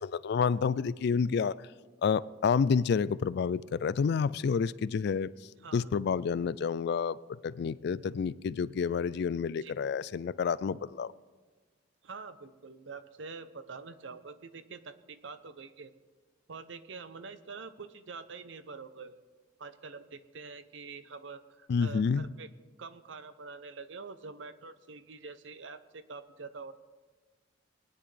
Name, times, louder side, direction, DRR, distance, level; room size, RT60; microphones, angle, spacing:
voice 1, 0.0-1.7 2.0-7.2 7.4-11.1 21.7-22.3, left 6 dB, 55° left, 0.3 m, -29 dB
voice 2, 12.0-15.9 16.5-19.2 19.6-22.5 22.8-26.7, right 4 dB, 70° right, 0.7 m, -46 dB
20.5 x 10.0 x 3.3 m
head